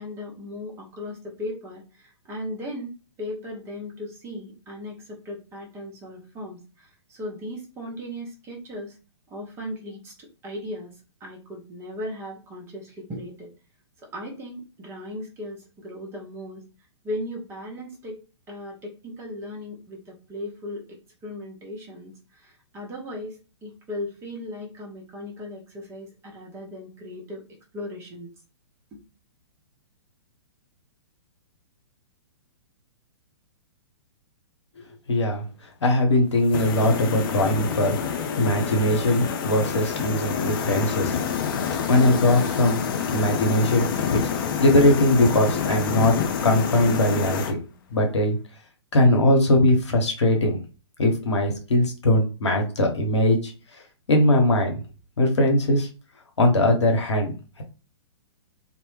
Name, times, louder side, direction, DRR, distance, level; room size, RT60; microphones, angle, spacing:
voice 1, 0.0-2.9 3.2-6.6 7.1-8.9 9.3-10.9 11.2-13.5 14.1-16.6 17.0-18.2 18.5-22.1 22.4-23.4 23.6-27.4 27.7-28.3, left 1 dB, 20° right, 0 dB, 0.7 m, -37 dB
voice 2, 35.1-35.4 35.8-38.0 38.4-41.2 41.9-42.8 43.1-44.2 44.6-46.2 46.4-47.6 47.9-48.4 48.9-50.6 51.0-53.8 54.1-54.8 55.2-55.9 56.4-57.6, left 1 dB, 80° left, 2 dB, 0.8 m, -20 dB
sound 1, 36.5-47.5, left 7 dB, 50° left, 0.4 m, -27 dB
2.0 x 2.0 x 3.1 m, 0.33 s
figure-of-eight pair, 115°, 15 cm